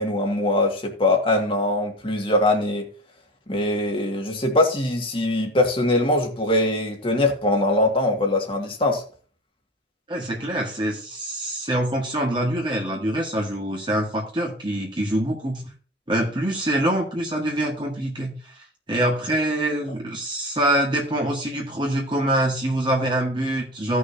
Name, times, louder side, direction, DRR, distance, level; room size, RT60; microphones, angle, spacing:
voice 1, 0.0-2.9 3.5-9.0, left 1 dB, 30° left, 2.1 m, -22 dB
voice 2, 10.1-15.7 16.1-24.0, right 1 dB, 25° right, 1.8 m, -25 dB
16.5 x 6.4 x 2.9 m
head